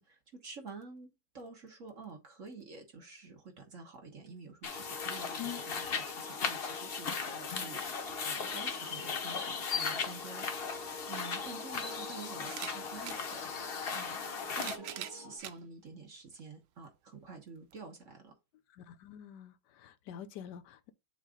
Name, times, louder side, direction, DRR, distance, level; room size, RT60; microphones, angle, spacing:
voice 1, 0.1-10.4 11.1-14.2 14.5-18.3, right 4 dB, 50° right, 1.5 m, -49 dB
sound 1, 4.6-14.8, left 6 dB, 45° left, 0.8 m, -37 dB
sound 2, 4.7-15.4, left 1 dB, 25° right, 1.9 m, -50 dB
sound 3, 11.0-11.1 12.4-13.2 14.2-15.6 16.3-16.4 17.7-17.8, right 12 dB, 85° right, 1.2 m, -43 dB
voice 2, 18.7-20.9, left 10 dB, 80° left, 1.3 m, -45 dB
7.3 x 2.6 x 5.0 m
omnidirectional pair, 1.8 m